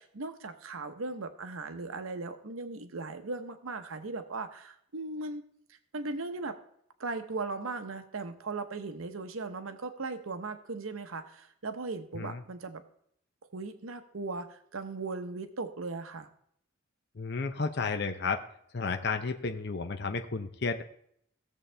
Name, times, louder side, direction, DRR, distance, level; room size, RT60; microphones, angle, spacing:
voice 1, 0.0-5.4 5.9-6.6 7.0-12.8 13.5-16.3, right 3 dB, 90° right, 8 dB, 0.9 m, -38 dB
voice 2, 17.2-18.4 18.7-20.8, left 4 dB, 55° left, 6 dB, 0.6 m, -32 dB
16.5 x 7.1 x 3.3 m, 0.69 s
head